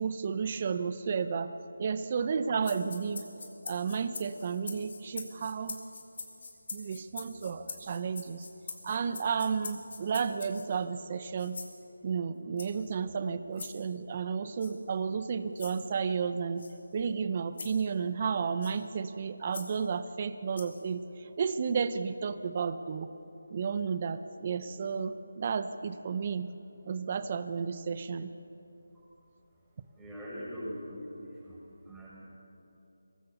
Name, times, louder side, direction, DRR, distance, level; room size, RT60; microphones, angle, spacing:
voice 1, 0.0-1.5 1.8-3.2 3.6-5.8 6.7-8.5 8.8-11.6 12.0-16.6 16.9-23.1 23.5-26.5 26.8-28.3, right 6 dB, 30° right, 12 dB, 0.7 m, -32 dB
sound 1, 2.6-10.8 11.4-11.8 12.6-12.9 13.6-13.7 14.6-14.7 15.6-15.8 16.6-16.7 17.6-17.8 18.6-18.8 19.5-19.7 20.6-20.8, left 4 dB, 50° left, 3.3 m, -43 dB
voice 2, 30.0-30.8 31.1-31.6 31.8-32.1, equal, 5° right, -9 dB, 6.5 m, -41 dB
24.0 x 20.0 x 7.0 m, 2.8 s
figure-of-eight pair, 165°, 0 cm